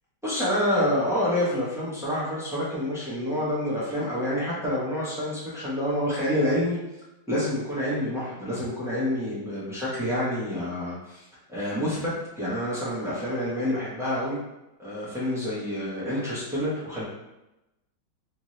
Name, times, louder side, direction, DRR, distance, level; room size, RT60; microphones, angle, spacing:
voice 1, 0.2-6.8 7.3-14.4 14.8-17.0, left 1 dB, 5° right, -9 dB, 0.6 m, -28 dB
3.4 x 2.8 x 3.1 m, 0.96 s
omnidirectional pair, 2.1 m